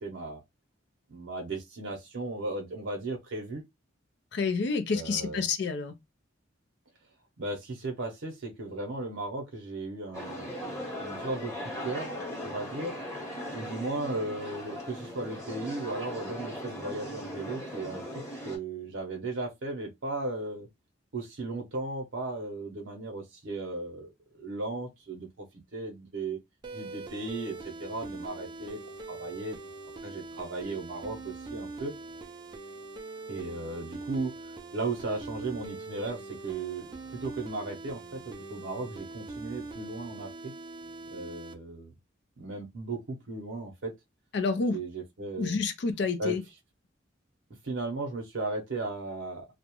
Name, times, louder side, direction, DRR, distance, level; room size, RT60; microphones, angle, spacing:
voice 1, 0.0-0.4 1.1-3.6 4.9-5.5 7.4-10.5 10.9-11.5 11.8-12.1 12.4-12.9 13.5-18.0 18.4-20.7 21.1-24.1 24.4-25.5 25.7-26.4 26.7-28.8 29.1-29.6 30.0-31.9 33.3-34.3 34.7-36.9 37.2-40.5 41.1-41.9 42.4-43.9 44.7-45.6 46.2-46.4 47.6-49.5, right 2 dB, 75° right, 0.6 m, -36 dB
voice 2, 4.3-5.9 44.3-44.8 45.4-46.4, left 4 dB, 60° left, 0.4 m, -29 dB
sound 1, 10.1-18.6, equal, 15° left, 0.9 m, -39 dB
sound 2, 26.6-41.5, right 3 dB, 20° right, 0.3 m, -43 dB
2.3 x 2.0 x 2.8 m
head